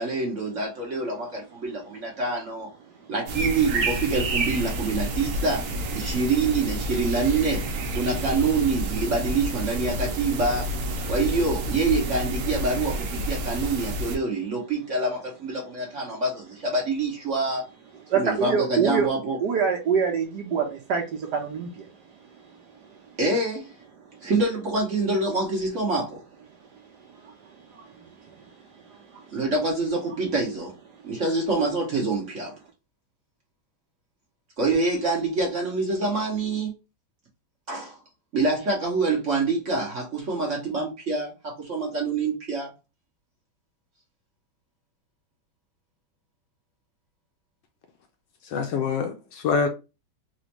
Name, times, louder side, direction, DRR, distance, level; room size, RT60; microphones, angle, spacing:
voice 1, 0.0-2.7 3.1-7.6 7.9-10.7 11.1-17.6 18.1-19.4 23.2-23.7 24.2-26.2 29.3-30.7 31.0-32.5 34.6-36.7 37.7-38.0 38.3-42.7, right 3 dB, 50° right, 1.0 m, -26 dB
sound 1, 3.3-14.2, right 1 dB, 85° right, 0.7 m, -29 dB
voice 2, 18.1-19.1 19.4-21.9 27.1-28.3 28.9-29.2, right 6 dB, 65° right, 1.2 m, -26 dB
voice 3, 48.5-49.7, left 5 dB, 75° left, 1.1 m, -25 dB
4.2 x 2.4 x 2.9 m
omnidirectional pair, 2.2 m